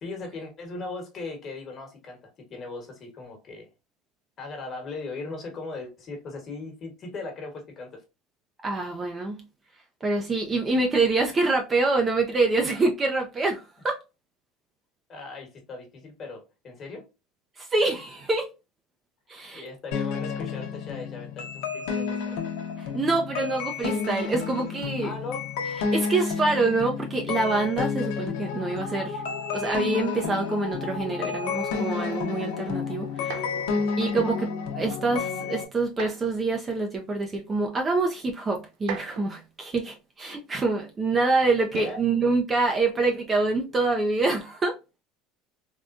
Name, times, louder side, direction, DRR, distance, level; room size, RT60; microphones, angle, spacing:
voice 1, 0.0-3.7 4.4-8.0 15.1-17.1 19.5-22.4 25.0-25.5 33.6-33.9 41.7-42.0, left 3 dB, 30° left, 1.3 m, -38 dB
voice 2, 8.6-9.4 10.0-14.0 17.6-18.5 19.3-19.7 22.9-25.1 25.9-29.2 29.5-33.4 34.0-44.8, right 3 dB, 20° right, 0.5 m, -26 dB
sound 1, 19.9-35.6, left 5 dB, 80° left, 0.8 m, -30 dB
sound 2, 33.2-33.7 35.9-36.4 37.4-37.5 38.7-39.5 41.7-42.1 43.3-43.7, right 7 dB, 75° right, 0.5 m, -38 dB
3.5 x 2.2 x 2.5 m
cardioid pair, 150°, 0 cm